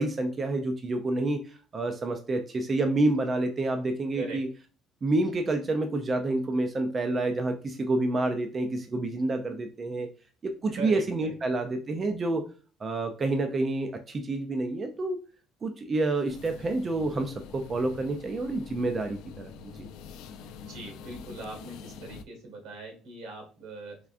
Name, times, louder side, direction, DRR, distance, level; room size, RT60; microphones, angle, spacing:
voice 1, 0.0-4.5 5.0-10.1 10.4-12.4 12.8-15.2 15.6-19.9, right 2 dB, 25° right, 5 dB, 0.3 m, -28 dB
voice 2, 10.7-11.3 20.7-24.0, right 3 dB, 80° right, 3 dB, 1.4 m, -40 dB
sound 1, 16.3-22.2, left 6 dB, 85° left, 0.3 m, -45 dB
3.5 x 3.3 x 2.4 m, 0.36 s
cardioid pair, 180°, 0 cm